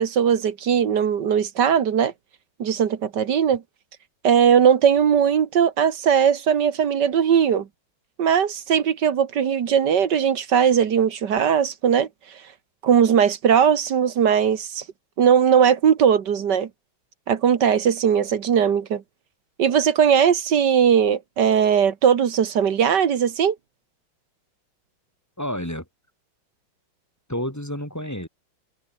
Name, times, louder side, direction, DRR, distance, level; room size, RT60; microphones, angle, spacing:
voice 1, 0.0-2.1 2.6-3.6 4.2-7.7 8.2-12.1 12.8-14.8 15.2-16.7 17.3-19.0 19.6-23.5, right 8 dB, 60° right, 1.9 m, -19 dB
voice 2, 25.4-25.8 27.3-28.3, equal, 5° left, 4.7 m, -29 dB
omnidirectional pair, 2.2 m